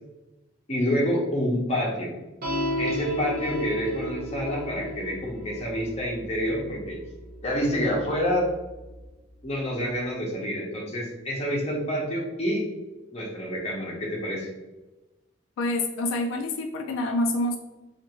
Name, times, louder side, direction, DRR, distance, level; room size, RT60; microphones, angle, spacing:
voice 1, 0.7-2.1 2.8-7.0 7.4-8.5 9.4-12.6 13.1-14.5, equal, 35° left, -3 dB, 0.7 m, -28 dB
sound 1, 2.4-9.1, left 1 dB, 50° right, 0.6 m, -34 dB
voice 2, 15.6-17.6, left 1 dB, 90° left, 4 dB, 0.3 m, -27 dB
2.5 x 2.4 x 2.9 m, 1.1 s
head